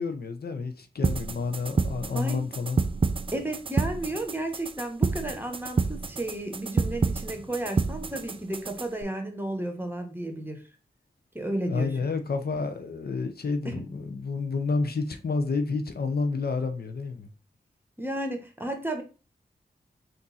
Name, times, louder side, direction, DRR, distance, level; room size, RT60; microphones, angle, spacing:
voice 1, 0.0-2.8 11.7-17.3, left 4 dB, 65° left, 0.7 m, -30 dB
sound 1, 1.0-9.0, right 4 dB, 30° right, 0.4 m, -29 dB
voice 2, 3.3-10.6 11.3-11.9 13.6-13.8 18.0-19.0, right 1 dB, 10° right, 1.2 m, -33 dB
3.6 x 2.6 x 4.1 m
cardioid pair, 45°, 17 cm